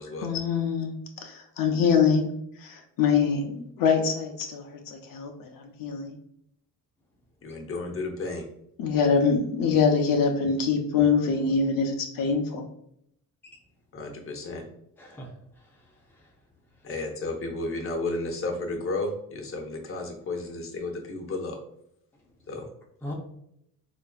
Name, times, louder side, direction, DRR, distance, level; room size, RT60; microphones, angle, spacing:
voice 1, 0.2-2.3 2.6-6.2 8.8-12.6, left 5 dB, 70° left, 3 dB, 0.6 m, -24 dB
voice 2, 7.4-8.4 13.9-14.6 16.8-21.6 22.5-22.6, left 2 dB, 40° left, 2 dB, 0.8 m, -32 dB
voice 3, 15.0-16.3 16.7-16.9 23.0-23.1, left 1 dB, 5° left, -1 dB, 0.6 m, -42 dB
4.0 x 2.5 x 2.3 m, 0.73 s
cardioid pair, 115°, 34 cm